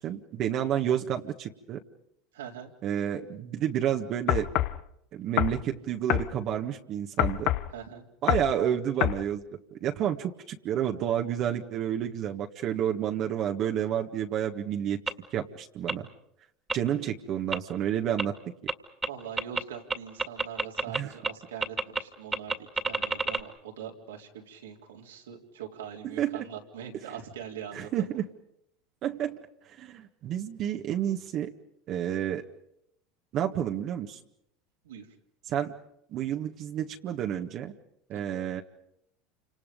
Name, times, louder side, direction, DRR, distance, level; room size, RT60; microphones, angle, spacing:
voice 1, 0.0-1.8 2.8-4.5 5.1-7.5 8.2-9.4 9.7-15.0 15.3-16.0 16.7-18.3 20.9-21.1 26.1-26.4 27.7-28.2 29.0-29.4 29.7-31.5 31.9-32.4 33.3-34.2 35.5-35.7 36.1-37.7 38.1-38.6, right 10 dB, 50° right, 3 dB, 1.7 m, -30 dB
voice 2, 2.3-2.7 7.7-8.0 19.1-28.1 34.8-35.1 38.1-38.4, right 8 dB, 90° right, 1 dB, 3.8 m, -42 dB
sound 1, 4.3-4.8 5.4-5.6 6.1-6.3 7.2-7.7 8.3-8.5 9.0-9.2, left 15 dB, 60° left, 0.9 m, -26 dB
sound 2, 15.1-15.2 15.9-16.0 16.7-16.8 17.5-17.6 18.2-18.3 18.7-18.8 19.0-19.1 19.4-19.6 19.9-21.0 21.2-21.3 21.6-22.0 22.3-23.4, right 4 dB, 15° right, 2.3 m, -27 dB
29.0 x 26.5 x 5.4 m, 0.77 s
hypercardioid pair, 90°, 0 cm